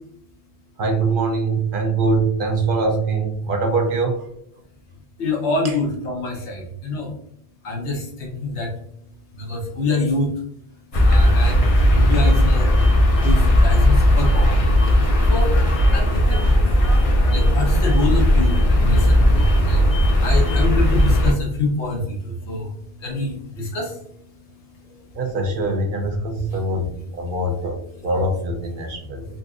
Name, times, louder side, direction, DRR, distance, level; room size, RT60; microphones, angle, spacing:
voice 1, 0.8-4.3 5.6-5.7 14.9-15.0 25.1-29.2, right 3 dB, 60° right, 3 dB, 0.7 m, -23 dB
voice 2, 5.2-7.1 7.6-8.7 9.3-10.3 10.9-12.7 13.2-14.7 15.2-15.6 15.9-16.5 17.3-19.9 20.2-22.7 23.0-24.0 24.8-25.0 26.5-26.6, left 2 dB, 80° left, -1 dB, 1.2 m, -26 dB
wide winter street with some children and garbage truck, 10.9-21.3, left 1 dB, 40° left, 0.6 m, -16 dB
3.9 x 2.4 x 2.4 m, 0.70 s
omnidirectional pair, 1.1 m